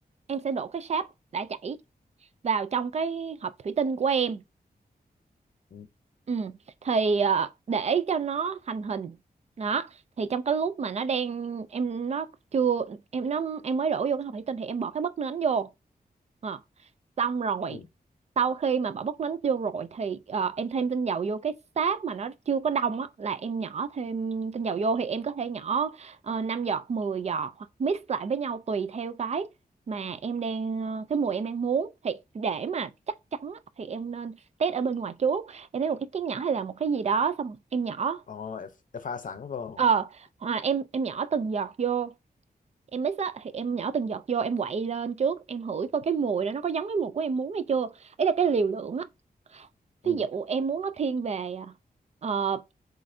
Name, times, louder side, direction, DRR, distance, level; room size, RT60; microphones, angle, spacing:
voice 1, 0.3-1.1 1.3-1.8 2.4-4.4 6.3-9.2 9.6-15.7 16.4-16.6 17.2-17.8 18.4-29.5 29.9-38.2 39.8-42.1 42.9-49.1 49.5-49.7 50.0-51.7 52.2-52.6, right 6 dB, 45° right, 0.4 m, -28 dB
voice 2, 38.3-39.8 50.0-50.2, left 6 dB, 55° left, 0.7 m, -38 dB
7.5 x 2.5 x 2.6 m
wide cardioid pair, 175°, 16 cm